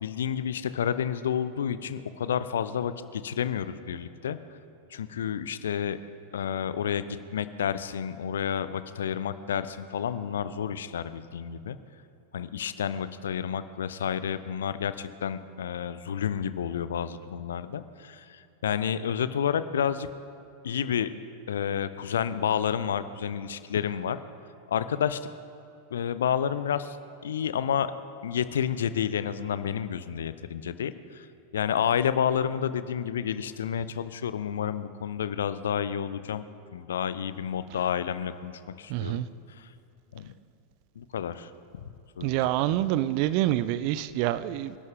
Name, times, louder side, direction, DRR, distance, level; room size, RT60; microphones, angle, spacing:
voice 1, 0.0-4.4 4.9-6.0 6.3-11.8 12.3-20.1 20.6-21.1 21.5-24.2 24.7-25.2 25.9-27.0 27.2-27.9 28.2-31.2 31.5-36.4 36.7-38.5 38.8-39.2 39.6-39.7 40.1-40.3 41.0-41.5 42.2-42.8, left 8 dB, 65° left, 14 dB, 0.6 m, -30 dB
voice 2, 38.9-39.3 42.2-44.8, right 14 dB, 45° right, 16 dB, 0.4 m, -26 dB
26.0 x 12.0 x 3.6 m, 2.7 s
figure-of-eight pair, 90°, 0 cm